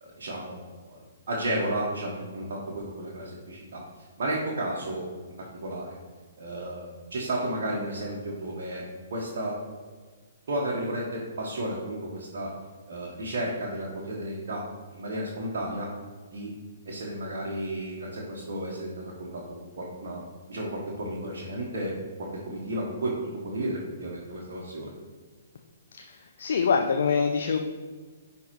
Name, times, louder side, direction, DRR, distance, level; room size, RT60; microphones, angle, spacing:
voice 1, 0.0-1.0 1.3-3.8 4.2-5.1 5.4-6.0 6.4-8.8 9.1-9.6 10.5-12.5 12.9-14.6 14.9-15.9 16.3-16.5 16.9-19.4 19.8-20.2 20.5-21.9 22.2-24.9, right 1 dB, 55° right, -4 dB, 1.2 m, -33 dB
voice 2, 25.9-27.6, left 5 dB, 60° left, 5 dB, 0.4 m, -25 dB
9.9 x 3.5 x 3.1 m, 1.5 s
figure-of-eight pair, 120°, 0 cm